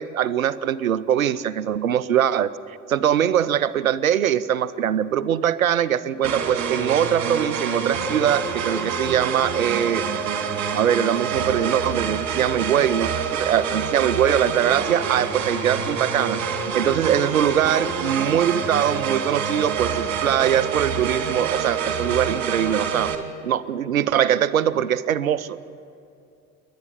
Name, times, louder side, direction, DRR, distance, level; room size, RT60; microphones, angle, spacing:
voice 1, 0.0-2.5 2.9-10.0 10.7-23.1 23.4-25.6, right 9 dB, 85° right, 17 dB, 0.7 m, -22 dB
sound 1, 6.2-23.1, right 6 dB, 40° right, 3.0 m, -27 dB
28.0 x 11.5 x 9.0 m, 2.6 s
figure-of-eight pair, 65°, 41 cm